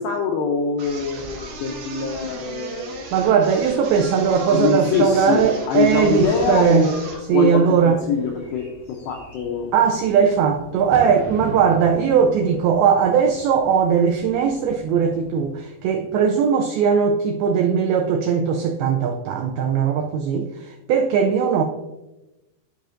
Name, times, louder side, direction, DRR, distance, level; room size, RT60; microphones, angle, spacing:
voice 1, 0.0-3.1 4.5-7.0 7.3-9.7, left 5 dB, 90° left, 1 dB, 2.1 m, -24 dB
sound 1, 0.8-7.3, right 2 dB, 70° right, 3.2 m, -36 dB
voice 2, 3.1-6.9 7.3-8.0 9.7-21.6, right 6 dB, 90° right, 4 dB, 2.2 m, -19 dB
Bird / Fireworks, 6.9-16.1, equal, 35° left, 1.6 m, -41 dB
12.5 x 5.0 x 2.6 m, 1.0 s
omnidirectional pair, 5.0 m